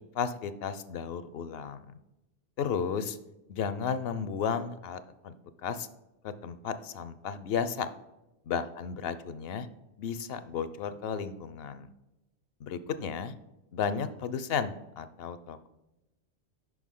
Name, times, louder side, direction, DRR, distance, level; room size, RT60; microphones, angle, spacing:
voice 1, 0.1-2.0 2.6-3.2 3.5-5.4 5.6-5.9 6.2-7.9 8.5-9.7 10.0-11.9 12.6-13.3 13.7-15.7, left 6 dB, 65° left, 13 dB, 0.7 m, -33 dB
6.3 x 5.5 x 3.7 m, 0.97 s
omnidirectional pair, 1.1 m